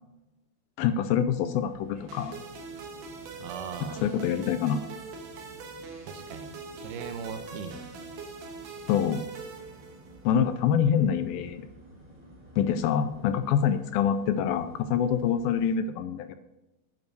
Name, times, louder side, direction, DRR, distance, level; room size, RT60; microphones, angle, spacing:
voice 1, 0.8-2.3 4.0-4.8 8.9-9.3 10.3-11.6 12.6-16.4, left 8 dB, 80° left, 10 dB, 2.2 m, -25 dB
sound 1, 1.6-15.7, equal, 15° right, 1.7 m, -52 dB
sound 2, 2.1-10.4, right 4 dB, 70° right, 2.4 m, -43 dB
voice 2, 3.4-4.0 6.1-7.9, right 7 dB, 85° right, 8 dB, 2.7 m, -39 dB
9.2 x 5.4 x 4.6 m, 1.0 s
omnidirectional pair, 4.4 m